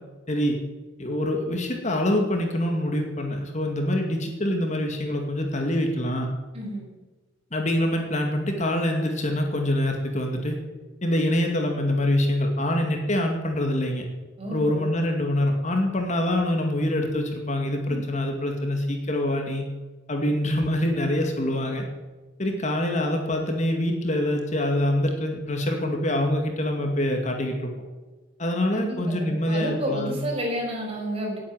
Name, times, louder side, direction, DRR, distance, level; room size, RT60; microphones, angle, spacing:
voice 1, 0.3-0.6 1.0-6.3 7.5-10.6 11.0-14.1 14.5-19.6 20.1-21.8 22.4-27.7 28.4-30.2, left 1 dB, 40° left, 3 dB, 2.2 m, -25 dB
voice 2, 6.5-6.8 14.4-14.9 28.7-31.4, equal, 30° right, -2 dB, 6.2 m, -30 dB
19.0 x 8.7 x 7.7 m, 1.2 s
head